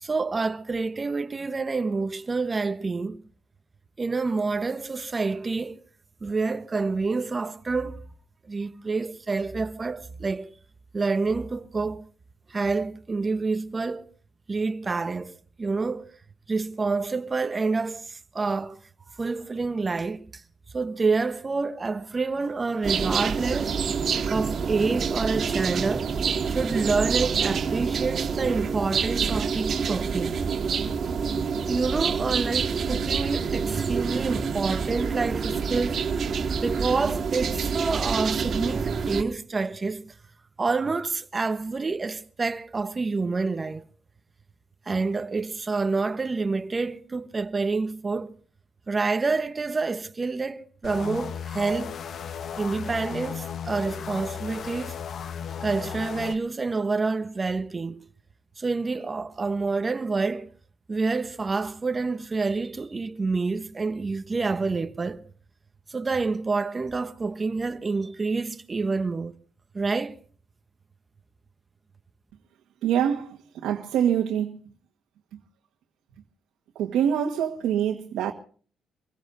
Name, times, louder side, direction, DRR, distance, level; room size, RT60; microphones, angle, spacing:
voice 1, 0.0-3.2 4.0-5.8 6.2-8.0 8.5-10.5 10.9-12.0 12.5-14.0 14.5-16.1 16.5-18.8 19.2-20.2 20.7-23.8 24.3-26.1 26.5-30.3 31.7-36.0 36.6-40.1 40.6-43.8 44.9-48.3 48.9-51.9 52.6-55.0 55.6-58.0 58.6-60.5 60.9-65.2 65.9-69.3 69.7-70.2, right 4 dB, 30° right, 1.1 m, -28 dB
sound 1, 22.8-39.2, right 6 dB, 55° right, 2.0 m, -27 dB
sound 2, 50.8-56.4, left 7 dB, 60° left, 0.8 m, -35 dB
voice 2, 72.8-74.6 75.3-75.4 76.7-78.3, right 9 dB, 85° right, 1.5 m, -25 dB
26.0 x 16.5 x 2.7 m
cardioid pair, 90°, 0 cm